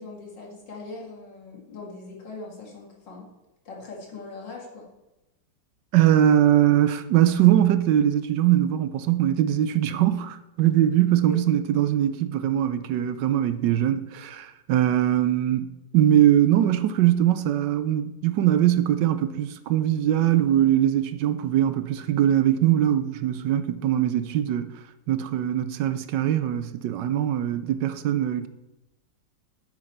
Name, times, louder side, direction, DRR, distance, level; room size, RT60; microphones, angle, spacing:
voice 1, 0.0-3.3 3.6-4.9 11.3-11.4, left 3 dB, 70° left, 2.7 m, -41 dB
voice 2, 5.9-15.7 15.9-24.7 25.1-28.5, right 11 dB, 75° right, 1.2 m, -21 dB
9.5 x 7.8 x 4.5 m
omnidirectional pair, 2.0 m